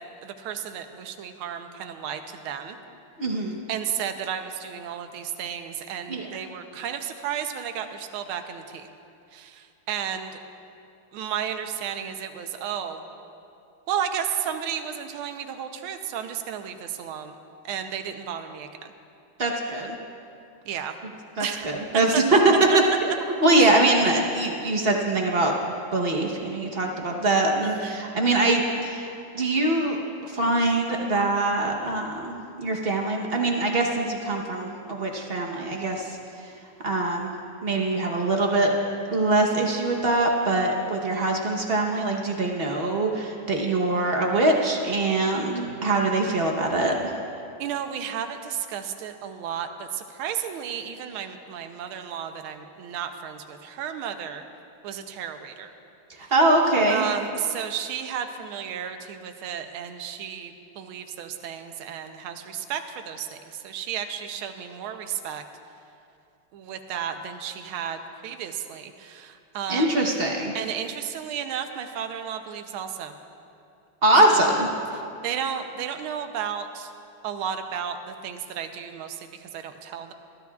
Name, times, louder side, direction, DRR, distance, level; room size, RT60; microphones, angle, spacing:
voice 1, 0.2-2.8 3.7-8.9 9.3-10.4 11.1-13.0 13.9-17.3 17.6-18.9 20.6-21.0 21.4-21.7 22.1-22.2 27.6-28.0 47.6-54.4 54.8-55.7 56.9-65.4 66.5-70.1 70.5-73.1 74.4-74.6 74.9-76.9 77.2-80.1, right 8 dB, 80° right, 7 dB, 1.5 m, -33 dB
voice 2, 3.2-3.6 6.1-6.3 19.4-20.0 21.4-22.5 23.0-23.1 23.4-25.5 25.9-36.2 36.8-37.3 37.6-38.7 39.1-47.1 56.3-57.0 69.7-70.5 74.0-74.7, right 2 dB, 45° right, 0 dB, 0.8 m, -23 dB
21.0 x 14.0 x 2.4 m, 2.6 s
omnidirectional pair, 2.4 m